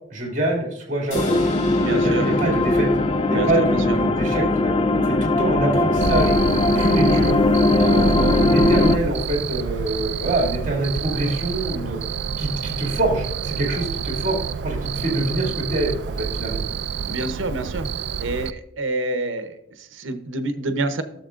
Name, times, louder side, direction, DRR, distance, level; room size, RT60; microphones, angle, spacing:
voice 1, 0.1-1.4 1.9-2.9 3.3-6.3 6.7-7.4 7.8-12.0 12.4-14.4 14.6-16.6, right 2 dB, 40° right, -1 dB, 2.4 m, -25 dB
sound 1, 1.1-4.6, left 2 dB, 70° left, 2.7 m, -41 dB
sound 2, 1.1-9.0, left 2 dB, 30° left, 0.4 m, -19 dB
voice 2, 1.8-2.3 3.3-4.0 17.1-17.9 18.2-21.0, right 2 dB, 90° right, 9 dB, 0.8 m, -27 dB
Cricket, 6.0-18.5, right 6 dB, 65° right, 0.3 m, -28 dB
12.5 x 6.9 x 2.5 m, 0.81 s
head